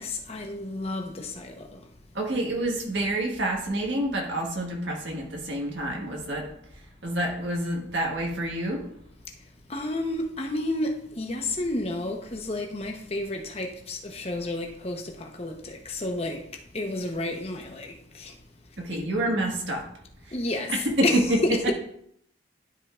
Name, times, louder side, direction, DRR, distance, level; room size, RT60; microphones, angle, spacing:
voice 1, 0.0-1.8 9.7-18.3 18.9-19.1 20.3-21.7, left 2 dB, 35° left, 0.9 m, -31 dB
voice 2, 2.1-6.5 7.0-8.9 18.8-19.9 20.2-20.3 20.7-21.4, right 1 dB, 75° right, 1.6 m, -28 dB
12.0 x 5.3 x 2.4 m
head